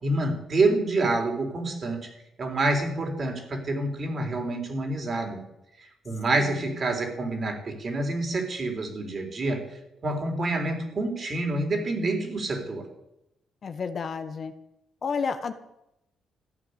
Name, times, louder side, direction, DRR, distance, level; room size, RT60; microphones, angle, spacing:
voice 1, 0.0-2.1 2.4-5.4 5.8-9.6 10.0-12.9, right 2 dB, 45° right, 3 dB, 3.9 m, -27 dB
voice 2, 6.4-6.8 13.6-14.5 15.0-15.5, left 5 dB, 50° left, 9 dB, 1.3 m, -31 dB
14.5 x 9.1 x 8.2 m, 0.84 s
cardioid pair, 90°, 0 cm